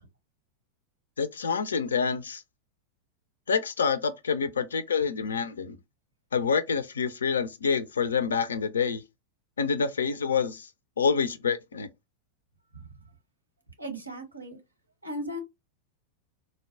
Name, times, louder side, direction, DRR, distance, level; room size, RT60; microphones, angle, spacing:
voice 1, 1.2-2.4 3.5-5.8 6.3-9.0 9.6-10.7 11.0-11.9, left 6 dB, 70° left, 0.4 m, -27 dB
voice 2, 13.8-14.6 15.0-15.4, equal, 85° right, 0.8 m, -36 dB
3.8 x 2.1 x 2.5 m
figure-of-eight pair, 90°, 0 cm